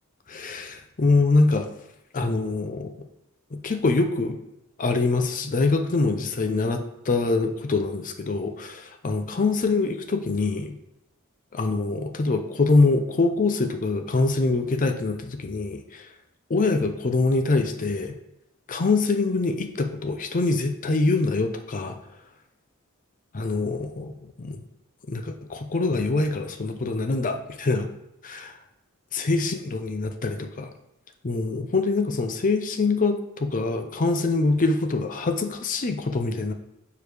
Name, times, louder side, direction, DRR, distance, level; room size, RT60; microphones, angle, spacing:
voice 1, 0.3-1.7 2.1-2.9 3.5-4.4 4.8-10.7 11.5-16.1 16.5-18.1 18.7-22.0 23.3-24.6 25.1-27.9 28.2-28.5 29.1-30.7 31.2-36.5, left 3 dB, 40° left, 7 dB, 0.5 m, -24 dB
6.8 x 4.7 x 3.3 m, 0.85 s
head